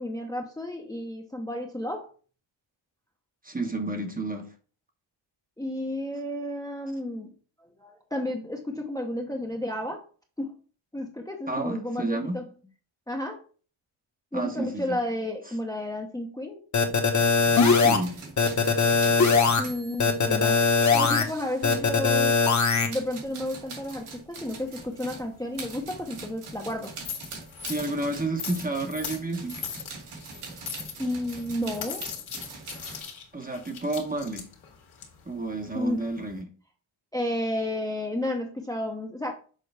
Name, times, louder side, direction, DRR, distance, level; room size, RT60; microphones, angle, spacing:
voice 1, 0.0-2.1 5.6-7.3 7.8-10.0 10.4-10.5 10.9-12.5 13.1-13.4 14.3-16.6 19.6-20.6 20.9-22.4 22.8-27.0 31.0-32.1 35.7-36.0 37.1-39.3, left 1 dB, 10° left, 0.8 m, -32 dB
voice 2, 3.4-4.5 11.5-12.4 14.3-15.0 17.7-18.3 27.7-29.7 33.3-34.5 35.3-36.5, right 2 dB, 15° right, 0.9 m, -31 dB
sound 1, 16.7-18.0 18.4-19.6 20.0-21.2 21.6-22.9, left 5 dB, 35° left, 1.2 m, -20 dB
sound 2, 17.4-22.5 22.9-33.0, right 4 dB, 90° right, 2.3 m, -43 dB
sound 3, 24.4-36.4, left 6 dB, 80° left, 1.8 m, -41 dB
6.6 x 4.5 x 3.3 m
cardioid pair, 115°, 49 cm